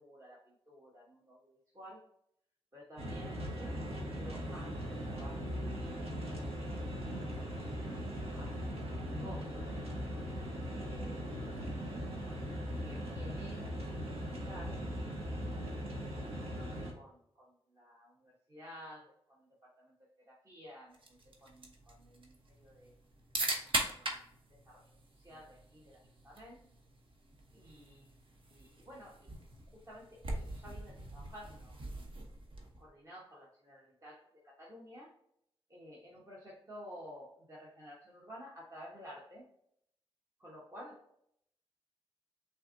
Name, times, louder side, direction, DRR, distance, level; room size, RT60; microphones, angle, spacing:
voice 1, 0.0-2.1 2.7-9.8 10.7-11.8 12.2-14.8 15.4-22.9 23.6-26.6 27.5-28.2 28.5-29.3 29.7-31.8 32.8-35.1 35.7-39.5 40.4-41.1, equal, 35° right, -5 dB, 1.1 m, -54 dB
sound 1, 3.0-16.9, equal, 85° right, 1.2 m, -39 dB
sound 2, 20.9-32.9, right 2 dB, 60° right, 1.0 m, -42 dB
5.6 x 3.4 x 2.6 m, 0.72 s
cardioid pair, 75°, 10 cm